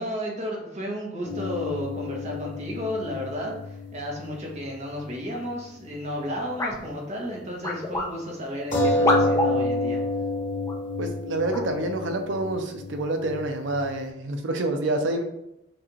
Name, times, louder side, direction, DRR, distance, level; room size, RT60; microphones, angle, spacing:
voice 1, 0.0-10.0, equal, 35° right, -1 dB, 1.0 m, -33 dB
sound 1, 1.2-5.1 5.4-5.5 8.7-13.9, left 1 dB, 40° left, 1.5 m, -29 dB
sound 2, 6.6-6.8 7.6-8.1 9.0-9.5 10.6-10.8 11.5-11.7, left 2 dB, 15° left, 0.5 m, -26 dB
voice 2, 11.0-15.2, right 2 dB, 75° right, 5 dB, 0.6 m, -27 dB
6.1 x 2.5 x 3.1 m, 0.83 s
head